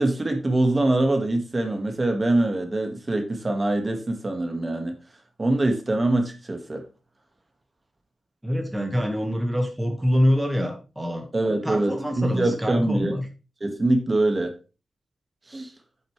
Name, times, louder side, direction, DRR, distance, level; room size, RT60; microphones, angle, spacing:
voice 1, 0.0-5.0 5.4-6.8 11.3-13.1 13.6-14.5 15.5-15.7, right 2 dB, 25° right, 4 dB, 1.7 m, -24 dB
voice 2, 8.4-11.3 11.6-13.2, equal, 10° right, 3 dB, 1.6 m, -25 dB
8.5 x 7.9 x 3.2 m, 0.32 s
cardioid pair, 95°, 0 cm